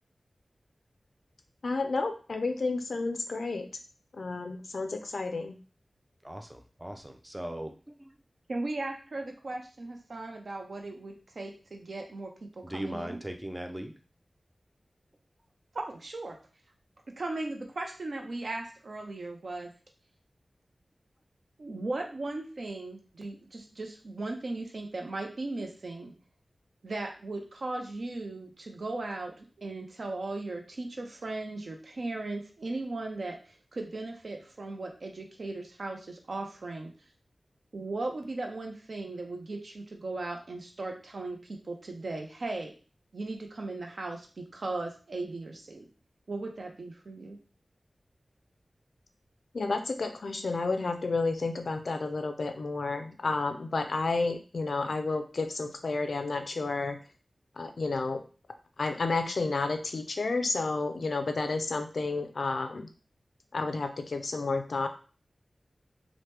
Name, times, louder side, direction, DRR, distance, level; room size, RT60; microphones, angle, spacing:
voice 1, 1.6-3.7 4.1-5.6 49.5-57.0 57.6-58.2 58.8-62.9 63.5-64.9, left 3 dB, 80° left, 6 dB, 0.4 m, -31 dB
voice 2, 6.2-7.7 8.0-8.1 12.6-13.9, right 1 dB, 10° right, 5 dB, 0.4 m, -38 dB
voice 3, 8.5-13.2 15.7-16.4 17.2-19.7 21.6-26.1 26.8-36.9 37.7-42.7 43.1-45.9 46.3-47.4, right 2 dB, 70° right, 2 dB, 0.6 m, -37 dB
2.9 x 2.1 x 3.3 m, 0.37 s
wide cardioid pair, 85°, 0 cm